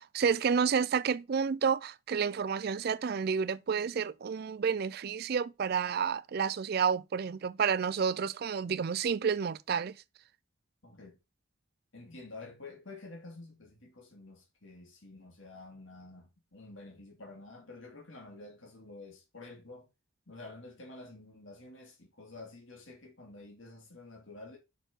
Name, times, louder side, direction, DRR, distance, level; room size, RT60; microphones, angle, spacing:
voice 1, 0.0-10.0, right 6 dB, 45° right, 0.3 m, -30 dB
voice 2, 10.8-11.2 11.9-19.9 20.3-24.6, left 2 dB, 65° left, 2.4 m, -49 dB
6.1 x 4.5 x 6.0 m
head